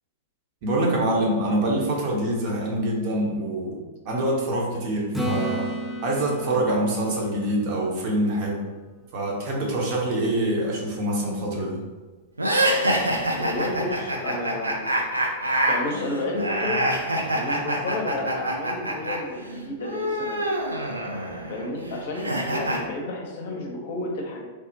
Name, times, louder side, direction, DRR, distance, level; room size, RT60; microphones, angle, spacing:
voice 1, 0.6-5.7 6.0-8.7 9.1-11.8, right 1 dB, 45° right, -2 dB, 0.7 m, -25 dB
Acoustic guitar / Strum, 5.1-8.9 13.7-13.8, right 1 dB, ahead, 0.4 m, -33 dB
sound 1, 12.4-19.2 19.4-22.8, right 1 dB, 85° right, 0.4 m, -26 dB
voice 2, 13.3-14.8 15.2-15.3 15.7-16.9 17.3-20.6 21.5-24.5, left 2 dB, 55° left, 1 dB, 0.6 m, -31 dB
3.2 x 2.1 x 2.7 m, 1.3 s
figure-of-eight pair, 100°, 0 cm